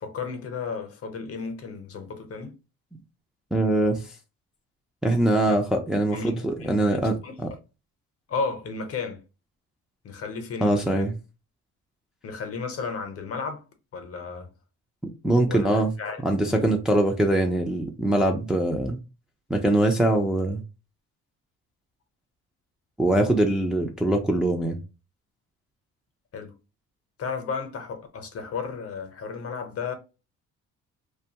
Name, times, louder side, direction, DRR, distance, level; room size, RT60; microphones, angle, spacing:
voice 1, 0.0-2.5 5.5-5.6 6.1-7.0 7.2-7.3 8.3-9.2 10.0-11.1 12.2-13.6 13.9-14.5 15.5-16.7 26.3-26.5 27.2-29.9, left 5 dB, 50° left, 0.8 m, -33 dB
voice 2, 3.5-4.0 5.0-7.5 10.6-11.1 15.2-15.9 16.2-19.0 19.5-20.6 23.0-24.8, right 1 dB, ahead, 0.4 m, -23 dB
2.4 x 2.3 x 2.8 m
cardioid pair, 100°, 31 cm